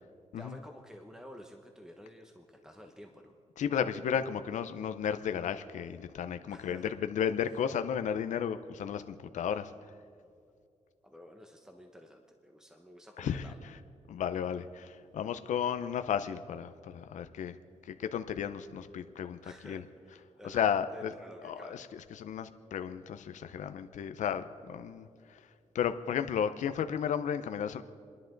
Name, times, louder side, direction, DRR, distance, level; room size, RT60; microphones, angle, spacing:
voice 1, 0.4-3.3 6.5-6.9 11.0-13.6 19.4-21.9, equal, 5° right, 4 dB, 1.3 m, -51 dB
voice 2, 3.6-9.7 13.2-13.4 14.1-17.6 17.9-19.8 20.4-21.1 21.4-25.4 25.7-27.8, left 8 dB, 85° left, 10 dB, 0.6 m, -33 dB
30.0 x 11.0 x 3.9 m, 2.4 s
cardioid pair, 80°, 12 cm